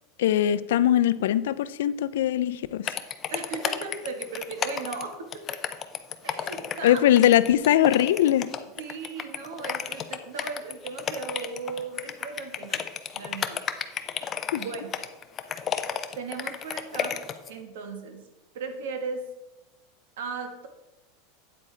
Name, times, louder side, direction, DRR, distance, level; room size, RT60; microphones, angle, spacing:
voice 1, 0.2-2.9 6.8-8.5 14.5-14.6, left 12 dB, 80° left, 16 dB, 0.4 m, -21 dB
sound 1, 2.9-17.5, left 8 dB, 20° left, 0.4 m, -32 dB
voice 2, 3.3-5.6 6.2-7.1 8.8-12.8 13.1-13.6 14.6-14.9 16.1-17.2 17.5-18.2 18.5-19.2 20.2-20.7, right 4 dB, 80° right, 6 dB, 1.3 m, -36 dB
8.6 x 8.3 x 3.3 m, 1.0 s
supercardioid pair, 160°, 0 cm